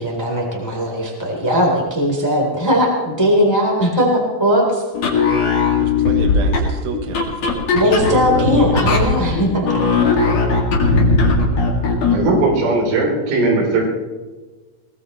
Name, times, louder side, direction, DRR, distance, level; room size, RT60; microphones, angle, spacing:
voice 1, 0.0-4.8 7.7-9.6, equal, 5° left, -1 dB, 2.7 m, -18 dB
sound 1, 4.9-12.3, left 3 dB, 40° left, 2.8 m, -18 dB
voice 2, 5.8-9.2, right 5 dB, 70° right, 4 dB, 2.4 m, -30 dB
voice 3, 12.1-13.8, right 2 dB, 85° right, -1 dB, 6.2 m, -17 dB
23.0 x 18.5 x 3.2 m, 1.3 s
omnidirectional pair, 5.6 m